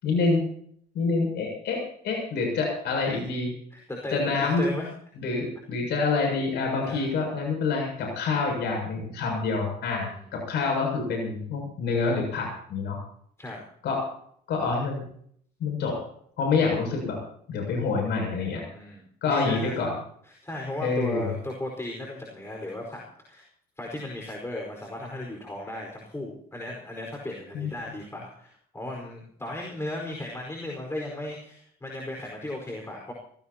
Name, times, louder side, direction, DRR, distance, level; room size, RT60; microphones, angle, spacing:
voice 1, 0.0-0.4 0.9-1.8 2.0-3.5 4.1-4.6 5.2-13.0 13.8-14.0 14.5-15.0 15.6-15.9 16.4-17.2 17.5-18.6 19.2-19.9 20.8-21.3 27.5-27.7, left 4 dB, 80° left, 1 dB, 7.4 m, -27 dB
voice 2, 3.7-4.9 6.8-7.1 10.0-10.3 13.4-13.6 16.5-16.8 18.7-19.7 20.2-23.5 23.8-33.1, left 1 dB, 15° left, 0 dB, 4.8 m, -36 dB
24.5 x 17.0 x 2.9 m, 0.63 s
cardioid pair, 105°, 17 cm